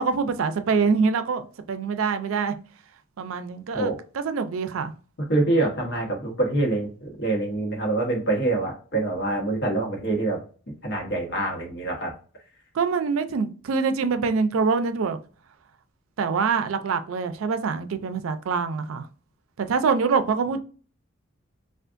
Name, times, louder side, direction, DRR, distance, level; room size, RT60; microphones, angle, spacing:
voice 1, 0.0-1.4 1.7-2.5 3.2-4.9 12.7-15.2 16.2-19.1 19.7-20.6, right 5 dB, 80° right, 0.4 m, -25 dB
voice 2, 5.3-10.4 10.8-12.1, right 2 dB, 55° left, 1.0 m, -25 dB
3.4 x 2.4 x 2.5 m
head